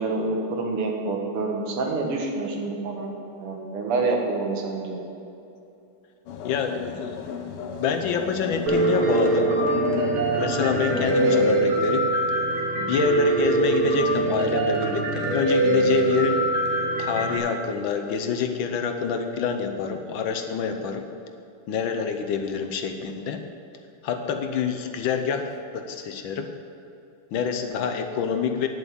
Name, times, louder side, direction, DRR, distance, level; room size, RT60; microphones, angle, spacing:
voice 1, 0.0-5.0, right 3 dB, 90° right, 1 dB, 2.3 m, -27 dB
sound 1, 6.3-11.4, left 7 dB, 85° left, 1.7 m, -32 dB
voice 2, 6.4-7.2 7.8-9.5 10.3-12.1 12.8-16.5 17.0-21.1 21.7-23.4 24.0-26.5 27.3-28.7, left 6 dB, 70° left, 6 dB, 1.4 m, -27 dB
Piano, 8.7-17.4, right 2 dB, 70° right, 2.5 m, -23 dB
9.5 x 8.0 x 7.0 m, 2.7 s
omnidirectional pair, 2.4 m